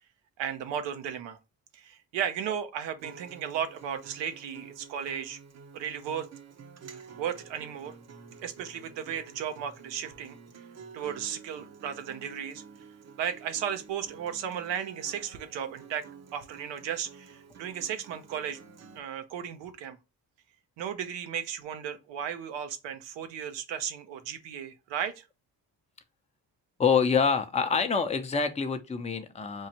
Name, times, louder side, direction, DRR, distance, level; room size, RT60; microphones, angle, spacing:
voice 1, 0.4-1.4 1.7-5.4 5.7-6.3 7.2-8.0 8.4-10.4 10.9-12.6 13.2-16.0 16.3-18.6 18.9-20.0 20.8-25.2, right 8 dB, 85° right, 0.7 m, -35 dB
Acoustic guitar, 3.0-19.0, right 6 dB, 40° right, 0.7 m, -50 dB
voice 2, 26.8-29.7, left 5 dB, 15° left, 0.6 m, -26 dB
4.6 x 2.5 x 2.8 m
supercardioid pair, 60°, 43 cm